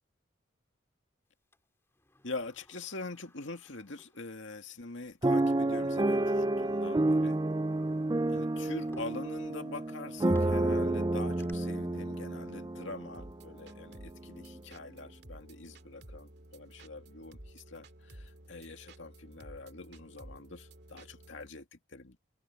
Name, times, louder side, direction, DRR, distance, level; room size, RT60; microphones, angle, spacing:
Sliding door, 1.5-4.8 5.1-5.2 6.1-6.3 6.8-11.5, left 1 dB, 15° left, 3.3 m, -61 dB
voice 1, 2.2-7.4 8.3-22.2, left 3 dB, 70° left, 2.2 m, -44 dB
sound 1, 5.2-13.3 13.9-14.0 14.3-14.6, right 2 dB, 20° right, 0.4 m, -30 dB
sound 2, 13.1-21.5, right 1 dB, 55° right, 2.3 m, -53 dB
open air
head